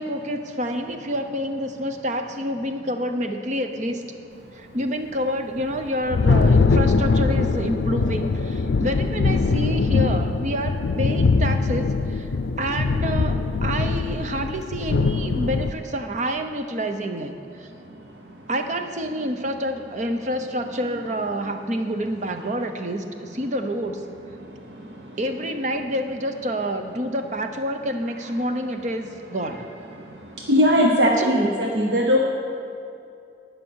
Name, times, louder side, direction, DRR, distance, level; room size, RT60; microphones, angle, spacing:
voice 1, 0.0-4.0 4.5-12.3 12.6-17.7 18.5-24.0 25.2-29.6 31.2-31.4, equal, 40° right, 6 dB, 0.8 m, -28 dB
Thunder, 5.6-15.7, left 4 dB, 80° left, 0.4 m, -22 dB
voice 2, 30.5-32.2, equal, 70° right, 1 dB, 0.9 m, -18 dB
12.0 x 9.3 x 6.3 m, 2.6 s
head